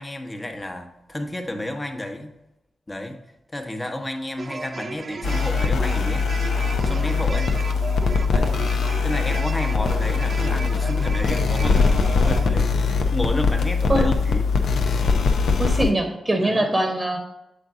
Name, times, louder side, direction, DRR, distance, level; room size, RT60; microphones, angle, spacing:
voice 1, 0.0-2.4 2.9-3.2 3.5-6.3 6.8-7.6 8.3-8.6 9.0-14.5 16.4-16.7, left 1 dB, 20° left, 4 dB, 1.0 m, -31 dB
sound 1, 4.4-12.5, right 4 dB, 50° right, 0.3 m, -35 dB
sound 2, 5.2-15.9, left 4 dB, 80° left, 0.6 m, -21 dB
voice 2, 15.6-17.2, right 1 dB, 25° right, 3 dB, 1.0 m, -22 dB
7.2 x 4.0 x 3.7 m, 0.91 s
cardioid pair, 55°, 0 cm